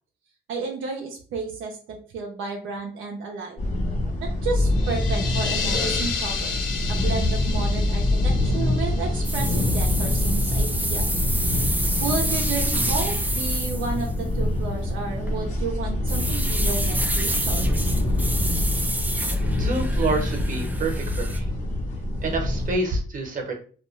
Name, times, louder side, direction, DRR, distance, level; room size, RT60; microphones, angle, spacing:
voice 1, 0.5-3.6 4.2-6.5 6.9-11.1 12.0-17.9, right 4 dB, 80° right, 1 dB, 0.5 m, -32 dB
sound 1, 3.6-22.7, left 1 dB, 40° left, 0.9 m, -25 dB
sound 2, 4.7-10.3, left 5 dB, 75° left, 0.5 m, -32 dB
sound 3, 9.2-14.2 15.2-15.6 16.1-21.4, right 1 dB, 10° right, 0.4 m, -29 dB
voice 2, 19.6-21.4 22.2-23.5, right 3 dB, 40° right, 2 dB, 0.9 m, -28 dB
2.3 x 2.2 x 3.0 m, 0.42 s
cardioid pair, 90°, 20 cm